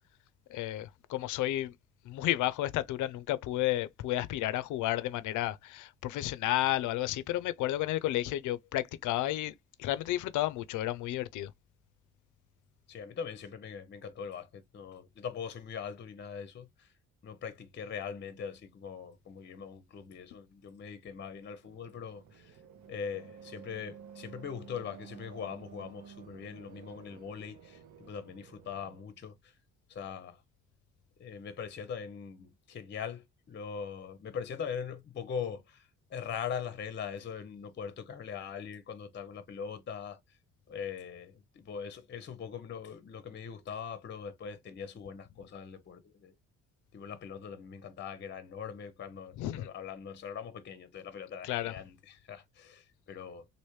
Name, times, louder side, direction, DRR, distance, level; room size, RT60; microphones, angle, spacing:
voice 1, 0.5-1.8 2.0-11.5 49.4-49.7 51.4-51.7, left 14 dB, 80° left, 0.5 m, -32 dB
voice 2, 12.9-16.9 17.2-22.6 22.9-29.5 29.9-30.4 31.2-40.2 40.7-46.4 46.9-53.5, left 7 dB, 35° left, 0.6 m, -41 dB
sound 1, 21.6-29.0, right 7 dB, 80° right, 0.8 m, -52 dB
3.2 x 2.6 x 3.0 m
cardioid pair, 90°, 30 cm